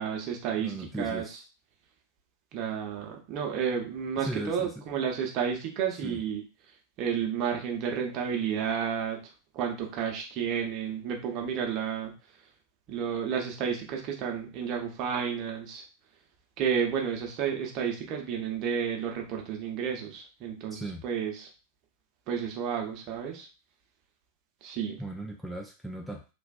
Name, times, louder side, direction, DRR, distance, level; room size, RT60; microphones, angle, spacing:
voice 1, 0.0-1.2 2.5-6.4 7.0-9.2 9.5-12.1 12.9-15.8 16.6-21.5 22.3-23.5 24.6-25.0, right 7 dB, 40° right, 1 dB, 0.7 m, -31 dB
voice 2, 0.6-1.4 4.2-4.8 6.0-6.2 20.7-21.0 25.0-26.2, right 1 dB, ahead, 0 dB, 0.4 m, -37 dB
3.3 x 2.4 x 2.3 m, 0.33 s
figure-of-eight pair, 90°, 0 cm